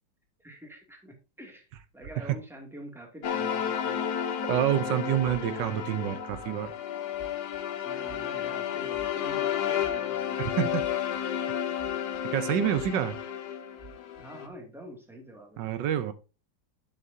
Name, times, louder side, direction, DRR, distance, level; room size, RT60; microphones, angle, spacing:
voice 1, 0.4-1.7 1.9-4.1 7.8-10.6 14.2-15.7, equal, ahead, 2.2 m, -46 dB
sound 1, 3.2-14.5, left 9 dB, 70° left, 1.5 m, -32 dB
voice 2, 4.5-6.7 10.6-10.8 12.3-13.2 15.6-16.1, right 11 dB, 90° right, 1.5 m, -27 dB
sound 2, 6.6-6.7 7.1-7.6 8.0-8.5 8.9-9.4 9.8-10.4 10.8-11.2 11.8-12.2 12.7-13.2 13.8-14.2, right 6 dB, 30° right, 4.9 m, -49 dB
10.5 x 7.3 x 2.7 m
omnidirectional pair, 1.9 m